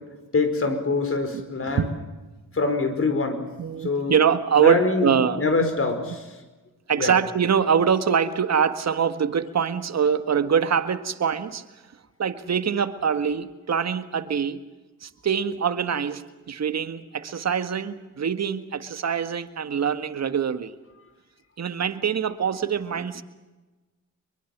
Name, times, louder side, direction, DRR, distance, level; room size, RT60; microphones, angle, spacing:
voice 1, 0.3-1.9 2.5-3.5 3.8-4.2 4.6-6.3 7.0-7.1, left 3 dB, 45° left, 8 dB, 5.1 m, -24 dB
voice 2, 3.6-5.7 6.0-6.2 6.9-11.7 12.2-14.6 15.0-20.7 21.6-23.2, right 7 dB, 55° right, 10 dB, 1.7 m, -24 dB
24.5 x 23.0 x 7.4 m, 1.2 s
cardioid pair, 70°, 32 cm